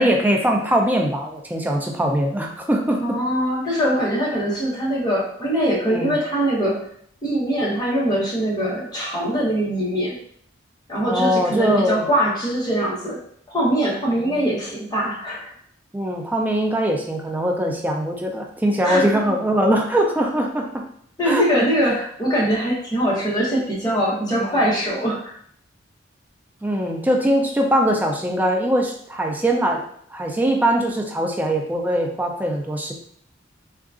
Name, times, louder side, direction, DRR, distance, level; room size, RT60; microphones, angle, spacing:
voice 1, 0.0-3.2 5.9-6.2 11.0-12.1 14.2-14.5 15.9-20.8 21.3-21.6 24.4-24.6 26.6-29.8 30.1-32.9, right 1 dB, 10° right, 1 dB, 0.3 m, -21 dB
voice 2, 3.0-6.8 7.2-10.2 10.9-13.2 13.5-15.5 18.8-19.0 21.2-25.3, equal, 20° left, -6 dB, 0.9 m, -22 dB
3.6 x 2.3 x 2.4 m, 0.63 s
head